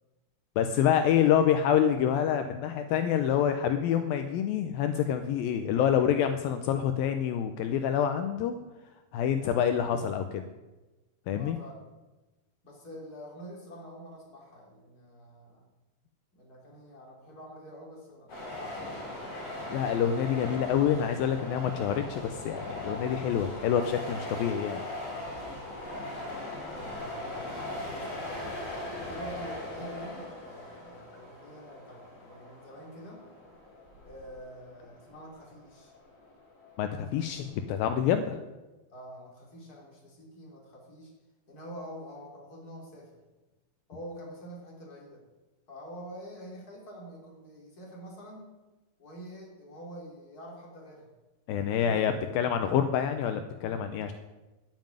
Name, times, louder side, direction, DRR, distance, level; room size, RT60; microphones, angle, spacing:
voice 1, 0.6-8.5 9.1-10.5 11.3-11.6 19.7-24.8 36.8-38.4 51.5-54.1, left 9 dB, 80° left, 8 dB, 2.4 m, -27 dB
voice 2, 11.3-11.8 12.6-15.6 16.3-19.4 25.6-28.5 29.1-33.2 34.0-35.9 38.9-41.1 41.5-43.1 43.9-45.2 45.7-48.5 49.0-51.1 51.7-52.0, equal, 25° left, -2 dB, 3.5 m, -46 dB
sound 1, 18.3-37.9, left 1 dB, 60° left, 7.1 m, -40 dB
12.5 x 7.5 x 9.1 m, 1.1 s
omnidirectional pair, 4.3 m